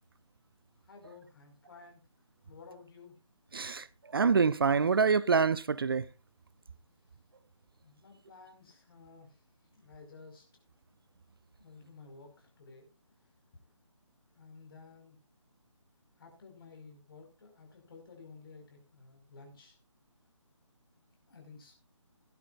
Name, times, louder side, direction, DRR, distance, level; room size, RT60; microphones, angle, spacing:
voice 1, 0.8-2.1 2.4-3.2 7.8-9.4 9.7-10.4 11.6-12.9 13.2-13.3 14.3-15.2 16.2-19.8 21.3-21.7, left 4 dB, 45° left, 5.3 m, -53 dB
voice 2, 3.5-3.9 4.1-6.0, right 5 dB, 45° right, 0.5 m, -26 dB
17.5 x 11.5 x 2.6 m
figure-of-eight pair, 155°, 17 cm